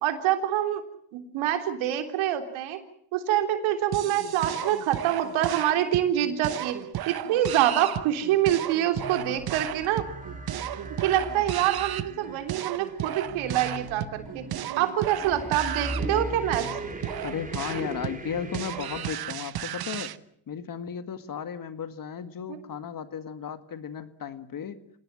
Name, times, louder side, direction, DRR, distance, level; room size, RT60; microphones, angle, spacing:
voice 1, 0.0-0.8 1.1-2.8 3.1-6.8 7.1-10.0 11.0-14.4 14.8-16.7 22.5-22.6, right 11 dB, 85° right, 6 dB, 3.6 m, -26 dB
sound 1, 3.9-20.2, right 12 dB, 50° right, 1.1 m, -35 dB
sound 2, 8.9-19.2, right 1 dB, 15° right, 4.8 m, -39 dB
voice 2, 17.2-20.1 20.5-24.8, left 7 dB, 45° left, 11 dB, 2.0 m, -35 dB
26.0 x 18.5 x 7.6 m, 0.67 s
cardioid pair, 90°, 46 cm